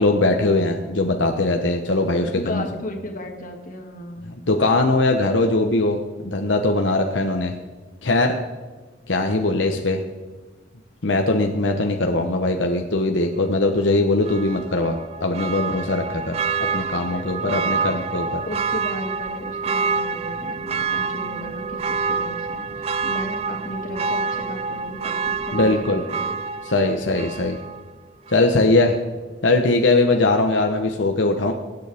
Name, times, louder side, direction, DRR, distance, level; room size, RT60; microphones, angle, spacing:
voice 1, 0.0-2.6 4.5-7.6 8.0-8.4 9.1-10.0 11.0-16.4 16.7-18.4 25.5-26.0 26.6-27.6 28.3-29.0 29.4-31.5, left 2 dB, 80° left, 4 dB, 1.0 m, -20 dB
voice 2, 2.2-4.4 17.1-17.9 18.5-26.4, left 1 dB, 45° left, 3 dB, 1.8 m, -35 dB
Church bell, 14.2-27.9 28.3-28.4, right 5 dB, 35° right, 0.3 m, -27 dB
22.5 x 9.3 x 3.5 m, 1.3 s
head